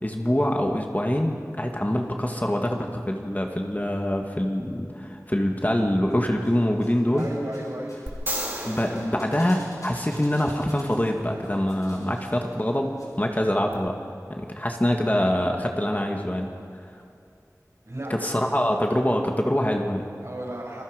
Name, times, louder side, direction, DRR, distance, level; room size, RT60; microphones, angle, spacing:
voice 1, 0.0-7.3 8.6-13.9 14.6-16.5 18.2-20.1, left 1 dB, 25° left, 2 dB, 2.1 m, -25 dB
sound 1, 6.1-6.9 7.2-13.1 13.3-13.4, left 1 dB, 70° left, 6.5 m, -49 dB
voice 2, 7.1-8.0 17.8-18.6 20.2-20.8, right 1 dB, 55° right, -4 dB, 7.5 m, -34 dB
sound 2, 8.1-10.3 13.7-13.8, equal, 35° right, 3.8 m, -34 dB
28.0 x 21.0 x 5.2 m, 2.5 s
wide cardioid pair, 45°, 6 cm